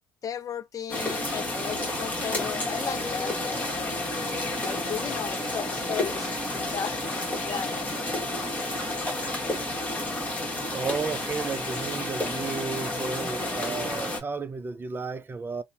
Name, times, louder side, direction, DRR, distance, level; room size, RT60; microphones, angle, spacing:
voice 1, 0.2-3.9 4.6-6.3 6.7-7.0 7.4-8.1, left 8 dB, 40° left, 0.5 m, -35 dB
sound 1, 0.9-14.2, left 1 dB, 15° left, 1.3 m, -30 dB
voice 2, 10.7-15.6, right 4 dB, 25° right, 0.4 m, -33 dB
2.8 x 2.1 x 2.7 m
supercardioid pair, 75°, 9 cm